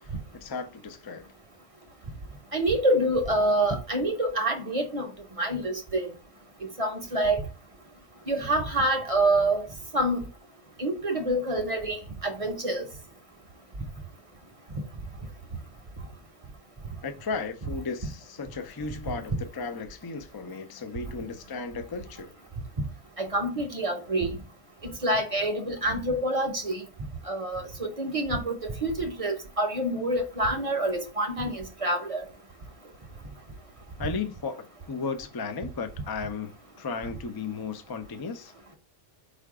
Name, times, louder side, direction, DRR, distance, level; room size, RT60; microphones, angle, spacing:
voice 1, 0.0-1.3 17.0-22.3 34.0-38.7, left 4 dB, 40° left, 0.3 m, -35 dB
voice 2, 2.5-5.1 5.4-6.1 6.8-7.4 8.3-9.7 9.9-10.3 10.8-12.8 23.2-24.3 25.0-26.8 27.3-32.2, right 1 dB, 35° right, 0.7 m, -27 dB
5.0 x 2.3 x 4.7 m
omnidirectional pair, 1.2 m